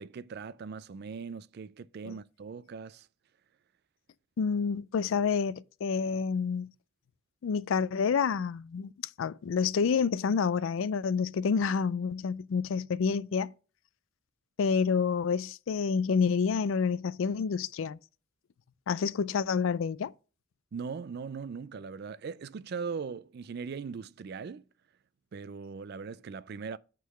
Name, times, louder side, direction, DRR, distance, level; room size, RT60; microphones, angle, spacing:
voice 1, 0.0-3.1 20.7-24.7 25.3-26.8, right 5 dB, 50° right, 0.3 m, -40 dB
voice 2, 4.4-6.7 7.4-8.9 9.2-13.5 14.6-18.0 18.9-20.1, left 6 dB, 75° left, 0.4 m, -28 dB
8.3 x 3.8 x 6.2 m
head